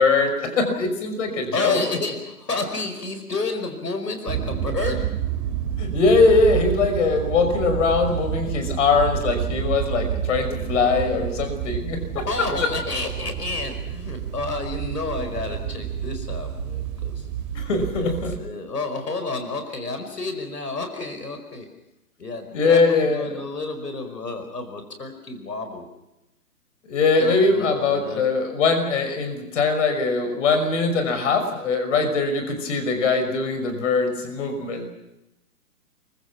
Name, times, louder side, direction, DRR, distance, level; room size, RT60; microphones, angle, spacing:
voice 1, 0.0-1.8 5.8-12.2 17.5-18.4 22.5-23.4 26.9-34.9, left 4 dB, 50° left, 7 dB, 5.8 m, -21 dB
voice 2, 1.5-5.0 12.1-17.3 17.9-21.7 22.2-25.9 27.2-28.2, left 3 dB, 85° left, 7 dB, 5.0 m, -30 dB
sound 1, 4.3-18.4, right 10 dB, 30° right, 2.8 m, -29 dB
27.5 x 24.0 x 6.0 m, 0.91 s
hypercardioid pair, 145°, 46 cm